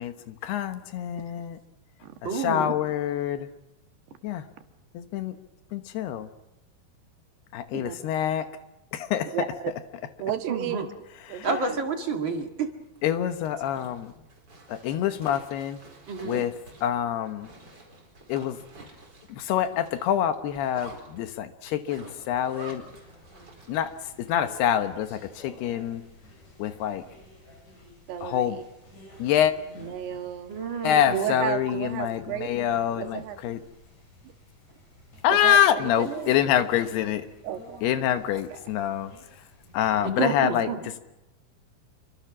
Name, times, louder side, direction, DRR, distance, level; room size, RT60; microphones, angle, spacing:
voice 1, 0.0-1.6 2.2-3.5 4.2-4.5 4.9-5.4 5.7-6.3 7.5-8.5 8.9-9.3 11.3-11.5 13.0-14.1 14.7-15.8 16.2-16.5 16.8-17.5 18.3-18.6 19.3-22.9 23.7-23.9 24.2-26.0 26.6-27.0 28.2-28.6 29.2-29.5 30.8-33.6 35.2-37.3 37.8-39.4 39.7-41.0, left 10 dB, 85° left, 9 dB, 3.3 m, -26 dB
voice 2, 2.2-2.7 10.5-10.9 11.4-12.7 16.1-16.4 30.5-31.2 40.0-40.8, right 4 dB, 40° right, 4 dB, 1.8 m, -29 dB
voice 3, 9.3-9.7 10.2-10.8 11.3-11.8 16.3-16.5 28.1-28.6 29.8-30.5 31.1-32.5 33.0-33.4 35.3-36.3 37.4-37.8 38.3-38.6, right 11 dB, 90° right, 6 dB, 3.6 m, -33 dB
Zipper (clothing), 12.8-24.0, right 2 dB, 25° right, 4.8 m, -49 dB
sound 1, 22.7-40.0, left 1 dB, 45° left, 8.1 m, -51 dB
27.5 x 24.5 x 6.1 m, 0.97 s
omnidirectional pair, 4.6 m